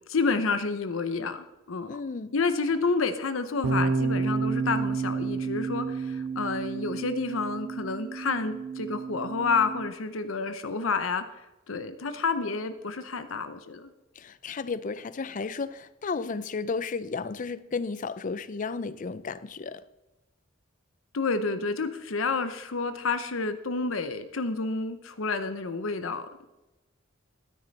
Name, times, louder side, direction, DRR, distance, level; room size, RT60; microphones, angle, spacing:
voice 1, 0.1-2.0 2.3-11.2 11.7-13.9 21.1-26.5, left 4 dB, 85° left, 0.8 m, -29 dB
voice 2, 1.9-2.3 14.2-19.8, left 4 dB, 40° left, 0.5 m, -33 dB
sound 1, 3.6-9.9, right 4 dB, 80° right, 0.7 m, -30 dB
13.5 x 9.8 x 4.1 m
head